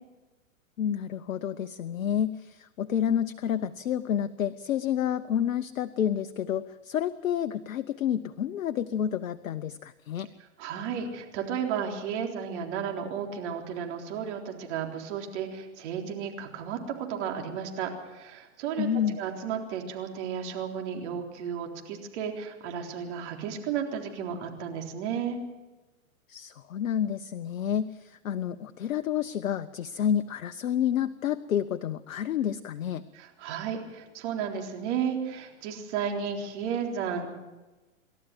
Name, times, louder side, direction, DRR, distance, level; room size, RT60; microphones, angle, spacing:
voice 1, 0.8-10.3 18.8-19.2 26.3-33.0, left 9 dB, 75° left, 10 dB, 0.9 m, -29 dB
voice 2, 10.6-18.9 19.2-25.4 33.1-37.3, right 7 dB, 55° right, 2 dB, 4.0 m, -33 dB
27.5 x 13.0 x 7.7 m, 1.1 s
hypercardioid pair, 110°, 42 cm